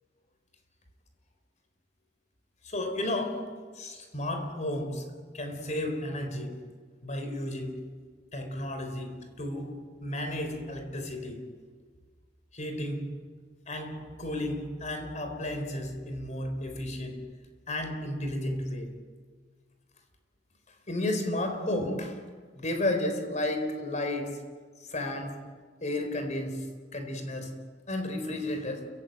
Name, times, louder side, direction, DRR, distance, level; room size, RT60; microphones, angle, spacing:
voice 1, 2.6-6.6 7.0-7.9 8.3-11.5 12.5-13.2 13.7-17.2 17.7-18.9 20.9-22.3 22.6-24.4 24.9-25.5 25.8-27.6 27.9-28.9, left 1 dB, 40° left, 6 dB, 4.0 m, -33 dB
30.0 x 15.5 x 9.1 m, 1.6 s
head